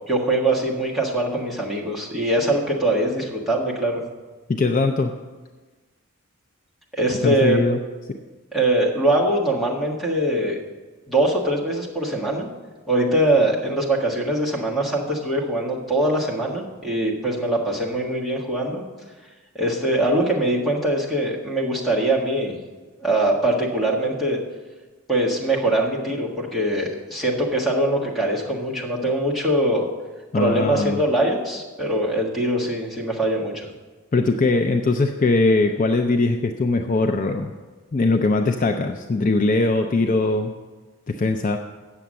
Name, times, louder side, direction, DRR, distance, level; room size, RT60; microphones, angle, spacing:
voice 1, 0.0-4.0 6.9-7.6 8.5-10.6 11.1-12.5 12.9-18.8 19.5-22.6 23.0-24.4 25.1-29.9 30.3-33.5, right 1 dB, ahead, -4 dB, 1.5 m, -22 dB
voice 2, 4.5-5.1 7.2-7.8 30.3-31.0 34.1-37.5 37.9-40.5 41.1-41.6, left 3 dB, 35° left, 5 dB, 0.4 m, -21 dB
8.4 x 6.9 x 7.5 m, 1.3 s
head